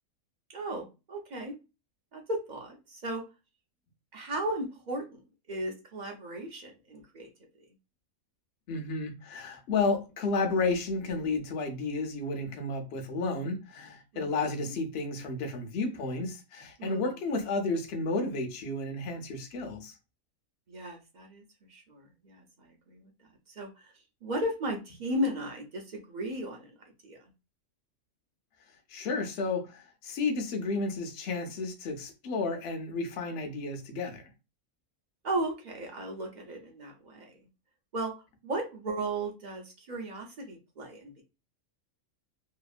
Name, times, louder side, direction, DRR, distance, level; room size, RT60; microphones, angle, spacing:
voice 1, 0.5-1.5 2.1-3.2 4.1-5.2 5.5-7.3 14.1-14.3 16.8-17.1 20.7-21.4 21.7-23.1 23.5-23.9 24.2-26.7 27.0-27.2 35.2-37.3 37.9-38.1 38.4-41.2, right 1 dB, 50° right, 0.5 m, -35 dB
voice 2, 8.7-19.9 28.9-34.3, left 3 dB, 55° left, 0.8 m, -32 dB
2.9 x 2.5 x 2.3 m
omnidirectional pair, 1.5 m